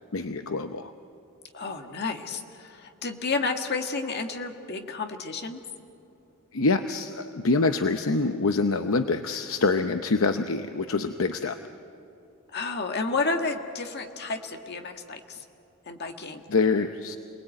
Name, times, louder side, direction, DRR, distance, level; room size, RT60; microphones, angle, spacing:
voice 1, 0.1-0.9 6.5-11.6 16.5-17.2, left 3 dB, 65° left, 8 dB, 0.8 m, -25 dB
voice 2, 1.5-5.6 12.5-15.4 15.9-16.4, left 3 dB, 50° left, 5 dB, 1.7 m, -31 dB
29.0 x 20.0 x 8.9 m, 2.8 s
head